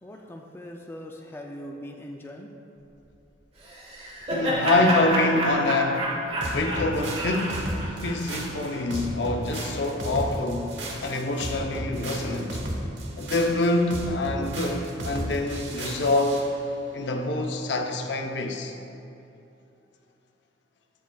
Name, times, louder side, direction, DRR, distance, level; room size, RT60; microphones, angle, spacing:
voice 1, 0.0-2.5, equal, 10° left, 1 dB, 0.3 m, -41 dB
Laughter, 3.6-8.8, right 1 dB, 35° right, 1.2 m, -29 dB
voice 2, 4.3-6.2 6.5-12.6 13.2-16.5 16.9-18.7, left 2 dB, 70° left, 3 dB, 0.6 m, -26 dB
sound 1, 6.4-16.5, right 1 dB, 80° right, 1.0 m, -34 dB
13.5 x 5.2 x 2.3 m, 2.8 s
head